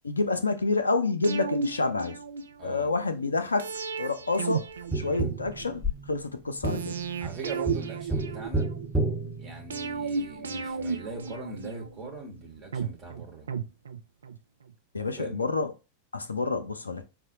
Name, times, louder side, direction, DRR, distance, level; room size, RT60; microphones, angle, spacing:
voice 1, 0.0-2.2 2.6-3.7 4.0-4.6 4.9-5.8 6.1-7.0 14.9-15.7 16.1-17.0, left 3 dB, 80° left, 0.4 m, -28 dB
sound 1, 1.2-2.8 3.6-5.7 6.6-8.9 9.7-12.1 12.7-14.4 14.7-14.8, right 5 dB, 70° right, 0.3 m, -34 dB
voice 2, 2.6-2.9 5.0-5.3 7.2-8.7 9.4-13.5 15.2-15.4, right 3 dB, 30° right, 1.0 m, -41 dB
Tap, 4.9-10.2 12.8-12.9, right 2 dB, ahead, 0.9 m, -32 dB
4.7 x 2.1 x 2.7 m
figure-of-eight pair, 90°, 0 cm